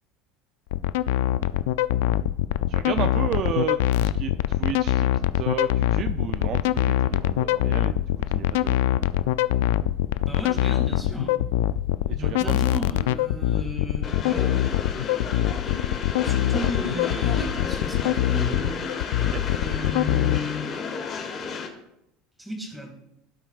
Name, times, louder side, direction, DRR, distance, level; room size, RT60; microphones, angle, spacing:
sound 1, 0.7-20.4, left 14 dB, 85° left, 0.3 m, -23 dB
voice 1, 2.7-5.1 5.3-8.8 12.1-12.5 19.3-19.4, right 9 dB, 50° right, 9 dB, 0.4 m, -32 dB
voice 2, 10.2-11.4 12.1-14.6 16.2-18.8 19.4-20.7 22.4-22.9, left 1 dB, 5° right, 1 dB, 2.2 m, -34 dB
Train, 14.0-21.7, left 5 dB, 40° left, 1.6 m, -32 dB
16.5 x 5.7 x 2.4 m, 0.82 s
supercardioid pair, 120°, 0 cm